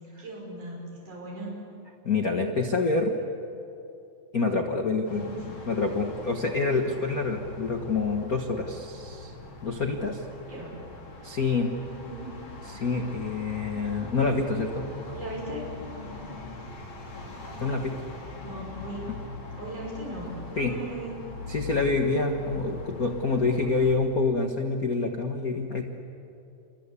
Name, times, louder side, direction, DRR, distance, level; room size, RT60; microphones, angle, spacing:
voice 1, 0.2-1.6 5.1-5.5 10.5-10.8 11.9-12.3 15.1-15.7 18.4-19.2 19.6-21.2, right 1 dB, 40° right, -3 dB, 7.0 m, -38 dB
voice 2, 2.0-3.1 4.3-5.2 5.7-9.3 9.6-10.2 11.2-11.7 12.7-14.9 17.6-18.0 20.6-20.7 21.5-25.8, left 3 dB, 90° left, 3 dB, 0.7 m, -27 dB
sound 1, 5.1-24.0, left 2 dB, 35° left, 3.7 m, -41 dB
29.0 x 24.0 x 8.4 m, 2.7 s
omnidirectional pair, 4.1 m